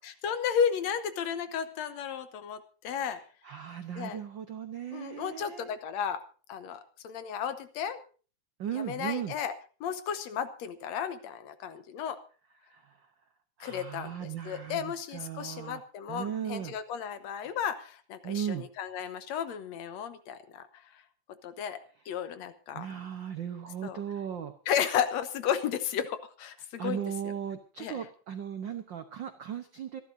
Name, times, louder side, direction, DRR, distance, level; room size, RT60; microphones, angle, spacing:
voice 1, 0.0-3.2 4.0-4.2 4.9-6.2 6.5-8.0 8.7-9.5 9.8-12.2 13.6-20.7 20.9-21.0 21.4-21.8 22.1-22.9 23.8-24.0 24.7-27.3 27.8-28.1, left 8 dB, 70° left, 11 dB, 2.2 m, -33 dB
voice 2, 3.4-5.7 8.6-9.3 12.7-13.0 13.6-15.8 16.1-16.7 18.2-18.7 22.7-24.5 26.8-30.0, right 9 dB, 70° right, 8 dB, 1.1 m, -37 dB
25.0 x 12.0 x 2.7 m, 0.37 s
omnidirectional pair, 3.4 m